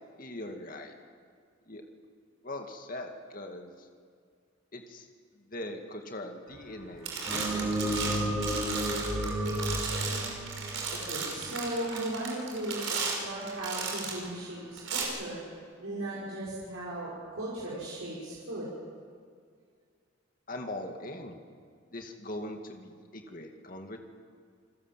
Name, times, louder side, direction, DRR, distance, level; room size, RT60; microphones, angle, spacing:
voice 1, 0.2-0.9 1.7-1.8 2.4-3.7 4.7-5.1 5.5-8.0 8.4-8.6 20.5-21.3 21.9-24.0, left 1 dB, 45° left, 4 dB, 2.2 m, -41 dB
sound 1, 6.5-6.8 7.0-14.3 14.8-15.0, right 5 dB, 65° right, 5.7 m, -35 dB
sound 2, 7.3-11.6, right 1 dB, 10° right, 3.8 m, -32 dB
voice 2, 10.9-15.4 15.8-18.7, right 1 dB, 85° right, -6 dB, 5.5 m, -37 dB
29.0 x 22.0 x 7.6 m, 2.1 s
head